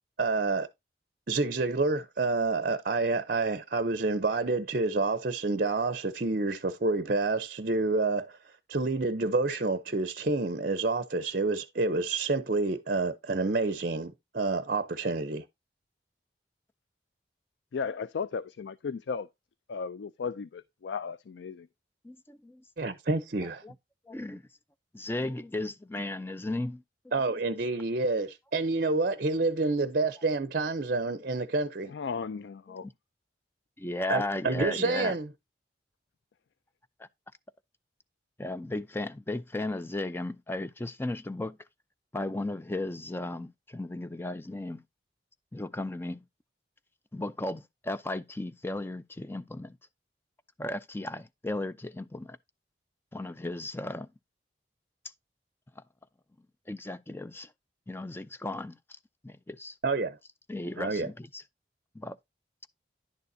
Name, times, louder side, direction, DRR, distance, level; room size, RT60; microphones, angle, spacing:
voice 1, 0.2-0.7 1.3-8.3 8.7-15.4 22.8-23.6 27.1-31.9 34.1-35.3 59.8-60.2 60.8-61.1, right 3 dB, 50° right, 0.6 m, -28 dB
voice 2, 17.7-19.3 19.7-21.7 31.9-32.9, left 5 dB, 85° left, 0.4 m, -35 dB
voice 3, 22.0-22.9 23.6-23.7 24.1-24.4 24.9-26.8 32.7-32.9 33.8-35.1 37.0-37.1 38.4-41.6 42.1-44.8 45.5-46.2 47.1-49.8 50.6-52.4 53.1-54.1 55.8-55.9 56.7-57.5 57.9-58.8 59.2-59.7 60.5-61.4 61.9-62.2, left 2 dB, 15° left, 0.4 m, -35 dB
10.5 x 6.8 x 2.7 m
head